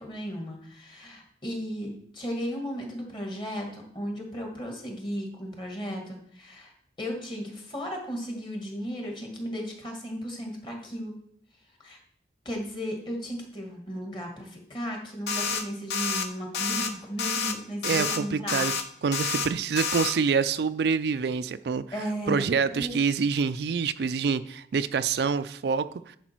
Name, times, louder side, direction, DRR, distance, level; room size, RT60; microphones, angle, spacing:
voice 1, 0.0-6.7 7.0-11.1 11.8-12.0 12.5-18.7 21.9-22.4 22.7-22.9, equal, 25° left, 1 dB, 1.8 m, -35 dB
sound 1, 15.3-15.6 15.9-16.3 16.5-16.9 17.2-17.5 17.8-18.2 18.5-18.8 19.1-19.5 19.8-20.1, left 5 dB, 70° left, 0.8 m, -28 dB
voice 2, 17.8-18.7 19.0-21.8 22.3-26.2, right 5 dB, 65° right, 12 dB, 0.4 m, -26 dB
10.0 x 5.0 x 4.5 m, 0.64 s
head